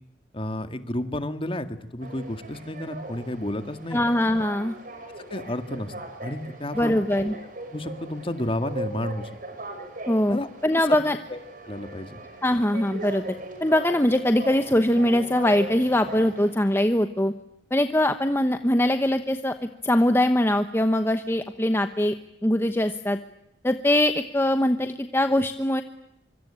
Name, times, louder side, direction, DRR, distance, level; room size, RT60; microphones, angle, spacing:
voice 1, 0.3-4.0 5.3-5.9 6.2-7.0 7.7-9.3 10.3-10.5 10.9-11.0 11.3-11.4 11.6-12.2, left 1 dB, 30° left, 9 dB, 2.0 m, -31 dB
sound 1, 2.0-16.5, right 1 dB, 50° right, 5.6 m, -39 dB
voice 2, 3.9-4.7 6.8-7.3 10.1-11.2 12.4-13.2 13.6-17.3 17.7-19.5 19.8-22.1 22.4-23.2 23.6-25.8, left 1 dB, 15° left, 8 dB, 1.0 m, -22 dB
25.0 x 25.0 x 8.8 m, 0.84 s
head